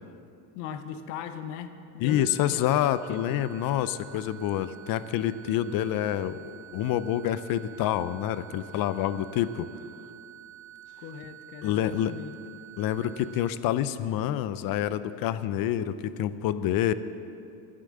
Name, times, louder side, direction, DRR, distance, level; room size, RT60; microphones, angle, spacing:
voice 1, 0.5-2.7 3.1-3.4 8.7-8.8 11.0-12.4, left 8 dB, 80° left, 10 dB, 1.0 m, -39 dB
voice 2, 2.0-9.7 11.6-12.1 12.8-16.9, left 11 dB, 50° left, 14 dB, 0.5 m, -27 dB
sound 1, 2.1-13.5, right 13 dB, 70° right, 0.7 m, -49 dB
11.5 x 7.6 x 7.6 m, 2.6 s
cardioid pair, 130°, 47 cm